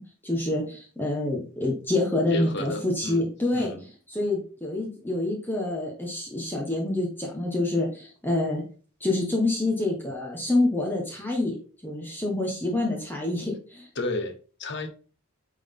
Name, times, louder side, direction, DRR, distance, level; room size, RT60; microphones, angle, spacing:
voice 1, 0.0-3.7 4.1-8.6 9.0-11.6 11.8-13.9, left 2 dB, 10° left, 1.2 m, -27 dB
voice 2, 2.3-3.8 14.0-14.9, left 2 dB, 50° left, 1.0 m, -33 dB
8.9 x 3.8 x 3.7 m
head